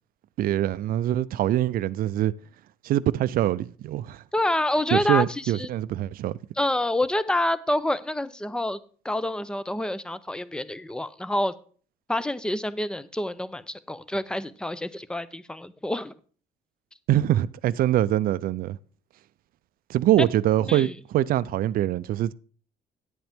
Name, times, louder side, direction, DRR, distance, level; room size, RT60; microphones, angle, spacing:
voice 1, 0.4-2.3 2.8-4.2 4.9-6.4 17.1-18.8 19.9-22.3, right 13 dB, 60° right, 0.4 m, -24 dB
voice 2, 4.3-5.7 6.6-8.8 9.0-11.5 12.1-16.1 20.7-20.9, left 1 dB, 5° left, 0.5 m, -27 dB
10.0 x 7.8 x 3.5 m
cardioid pair, 110°, 17 cm